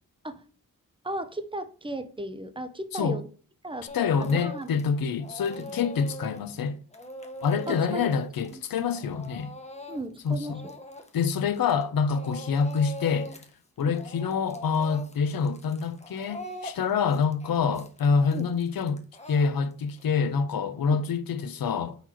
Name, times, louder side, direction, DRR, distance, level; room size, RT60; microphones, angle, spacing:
voice 1, 1.0-3.3 3.6-4.8 5.6-5.8 7.7-8.1 8.5-8.6 9.9-10.8 13.8-14.0 18.3-18.5 20.9-21.0, right 1 dB, 15° right, 0.5 m, -36 dB
voice 2, 3.9-6.8 7.4-9.5 10.2-10.6 11.1-13.4 13.8-19.0 19.3-22.0, left 5 dB, 75° left, 0.5 m, -26 dB
Speech / Crying sobbing, 3.9-4.9 5.2-11.8 12.1-13.5 13.8-20.0, left 1 dB, 20° left, 0.7 m, -42 dB
4.3 x 4.0 x 2.9 m
wide cardioid pair, 65°, 36 cm